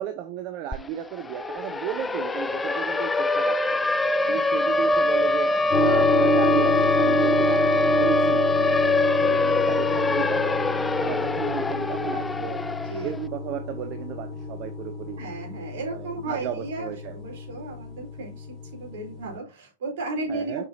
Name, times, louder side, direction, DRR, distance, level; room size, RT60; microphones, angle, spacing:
voice 1, 0.0-3.8 4.3-5.5 5.8-8.8 9.2-10.6 11.0-12.6 13.0-15.2 15.9-17.2 20.3-20.6, right 11 dB, 40° right, 7 dB, 0.9 m, -34 dB
Siren, 0.7-0.8 1.1-13.2, left 3 dB, 10° left, 0.5 m, -23 dB
sound 1, 5.7-19.4, equal, 35° left, 1.6 m, -29 dB
voice 2, 15.2-20.7, right 3 dB, 60° right, 2 dB, 4.0 m, -35 dB
6.9 x 6.2 x 2.8 m, 0.27 s
hypercardioid pair, 110°, 0 cm